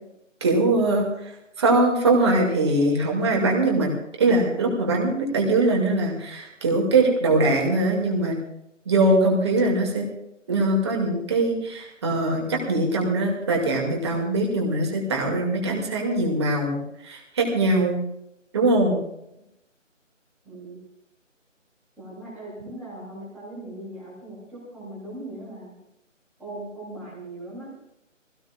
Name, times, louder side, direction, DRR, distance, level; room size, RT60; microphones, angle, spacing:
voice 1, 0.4-1.1 1.6-3.9 4.2-8.4 8.9-10.0 10.5-18.0 18.5-19.0 22.6-22.7, right 2 dB, 20° right, 0 dB, 2.2 m, -22 dB
voice 2, 20.4-20.8 22.0-25.8 26.4-27.7, right 1 dB, 5° right, -11 dB, 3.0 m, -39 dB
20.5 x 17.0 x 2.4 m, 0.82 s
figure-of-eight pair, 165°, 38 cm